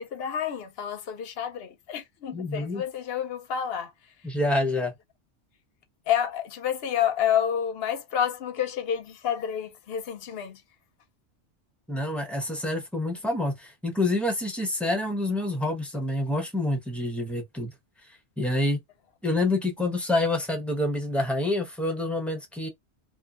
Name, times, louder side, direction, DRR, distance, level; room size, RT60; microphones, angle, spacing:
voice 1, 0.0-3.9 6.1-10.6, left 9 dB, 65° left, 0.8 m, -29 dB
voice 2, 2.3-2.8 4.2-4.9 11.9-17.7 18.4-18.8 19.2-22.7, left 2 dB, ahead, 0.7 m, -27 dB
2.8 x 2.6 x 2.3 m
omnidirectional pair, 1.2 m